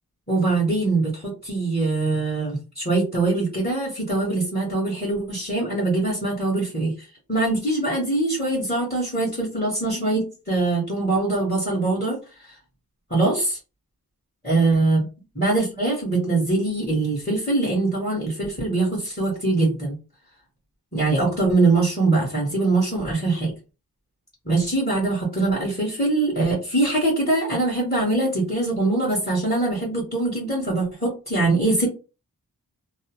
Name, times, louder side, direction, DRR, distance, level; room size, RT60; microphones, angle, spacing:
voice 1, 0.3-6.9 7.3-12.2 13.1-13.6 14.4-15.0 15.3-20.0 20.9-23.5 24.4-31.9, right 2 dB, 25° left, -5 dB, 1.5 m, -23 dB
2.9 x 2.0 x 3.0 m, 0.31 s
wide cardioid pair, 55°, 39 cm